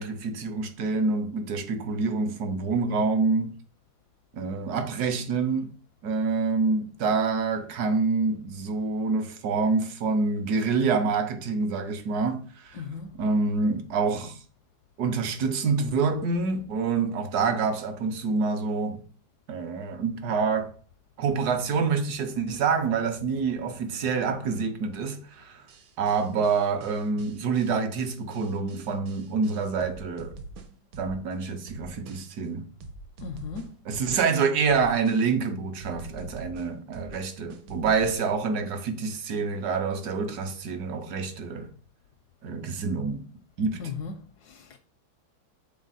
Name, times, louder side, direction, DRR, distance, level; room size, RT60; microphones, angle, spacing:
voice 1, 0.0-3.5 4.3-5.7 6.0-12.8 13.2-14.4 15.0-19.0 19.5-20.7 21.2-25.6 26.0-30.4 31.0-32.6 33.9-41.7 42.4-43.2 43.6-43.8, right 4 dB, 60° right, 1.2 m, -27 dB
voice 2, 12.7-13.2 33.2-33.7 43.8-44.8, left 5 dB, 75° left, 0.9 m, -37 dB
sound 1, 25.7-31.3 31.7-32.5 32.8-34.3 34.7-35.5 35.8-38.5, right 2 dB, 75° right, 1.6 m, -45 dB
6.3 x 3.9 x 4.0 m
omnidirectional pair, 2.2 m